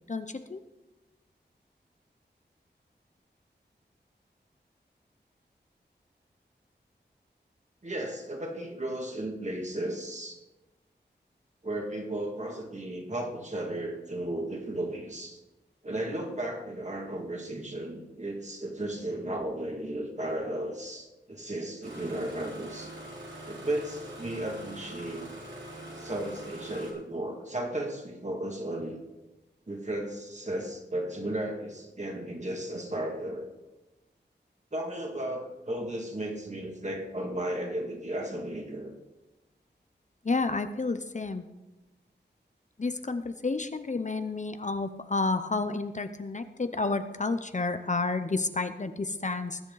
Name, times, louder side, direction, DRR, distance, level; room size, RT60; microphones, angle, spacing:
voice 1, 0.1-0.6 40.2-41.5 42.8-49.6, left 3 dB, 40° left, 10 dB, 0.7 m, -30 dB
voice 2, 7.8-10.4 11.6-15.4 15.8-22.9 23.5-25.3 26.0-29.0 29.7-33.5 34.7-38.9, right 1 dB, 40° right, 1 dB, 2.3 m, -34 dB
Engine starting, 21.8-26.9, right 1 dB, 85° right, 3.8 m, -43 dB
20.0 x 8.0 x 4.0 m, 1.1 s
wide cardioid pair, 70°, 19 cm